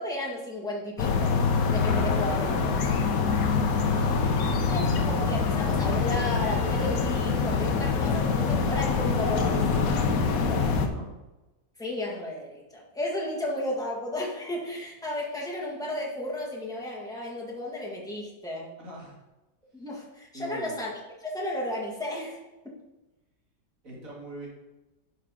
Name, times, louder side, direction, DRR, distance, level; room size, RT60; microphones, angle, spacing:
voice 1, 0.0-1.4 1.7-2.8 4.2-4.4 4.7-9.6 11.8-18.7 19.7-22.4 22.6-22.8, left 1 dB, 5° left, -4 dB, 1.5 m, -33 dB
sound 1, 1.0-10.9, left 5 dB, 80° left, 1.2 m, -25 dB
voice 2, 3.7-5.1 10.0-11.1 18.8-19.2 20.3-20.7 23.8-24.5, equal, 70° right, -4 dB, 2.7 m, -42 dB
9.3 x 5.5 x 3.7 m, 1.1 s
omnidirectional pair, 1.5 m